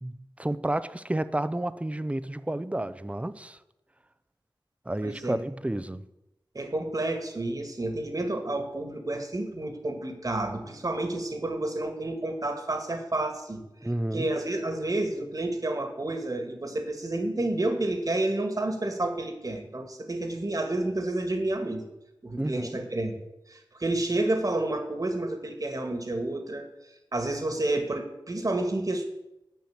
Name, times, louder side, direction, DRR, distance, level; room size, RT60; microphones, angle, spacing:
voice 1, 0.0-3.6 4.9-6.1 13.8-14.3 22.4-22.8, right 1 dB, 15° right, 0.6 m, -31 dB
voice 2, 5.0-5.4 6.5-13.6 14.1-21.8 22.2-23.2 23.5-26.7 27.1-29.1, right 2 dB, 45° right, 1.8 m, -30 dB
10.5 x 5.8 x 8.8 m
wide cardioid pair, 50°, 9 cm